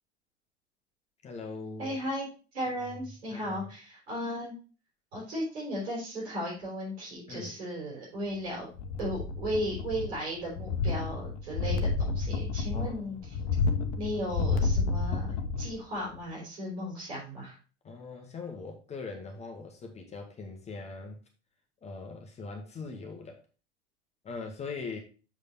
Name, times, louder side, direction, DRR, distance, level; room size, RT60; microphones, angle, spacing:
voice 1, 1.2-2.0 3.3-3.6 7.3-7.6 12.7-13.1 17.8-21.2 21.8-23.4 24.2-25.0, left 4 dB, 20° left, 2 dB, 1.2 m, -41 dB
voice 2, 1.8-2.3 2.5-4.6 5.1-8.7 9.0-13.4 14.0-17.6, equal, 70° right, -5 dB, 4.4 m, -35 dB
sound 1, 8.8-10.2 10.5-15.8 16.2-16.3, left 4 dB, 45° left, 1.0 m, -30 dB
7.2 x 5.1 x 4.0 m, 0.35 s
figure-of-eight pair, 85°, 35 cm